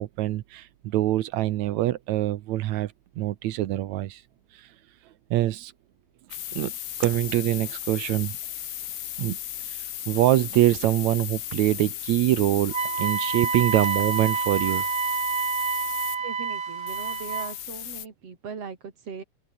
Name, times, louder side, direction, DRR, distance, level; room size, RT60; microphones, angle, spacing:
voice 1, 0.0-4.2 4.5-4.7 5.3-5.7 6.5-6.7 7.0-8.4 9.2-9.4 9.7-14.9, right 14 dB, 80° right, 2.1 m, -24 dB
sound 1, 6.3-16.2 16.9-18.1, left 11 dB, 55° left, 1.7 m, -35 dB
Wind instrument woodwind instrument, 12.7-17.5, right 6 dB, 35° right, 1.8 m, -28 dB
voice 2, 16.2-19.2, right 5 dB, 55° right, 4.1 m, -39 dB
open air
omnidirectional pair, 3.3 m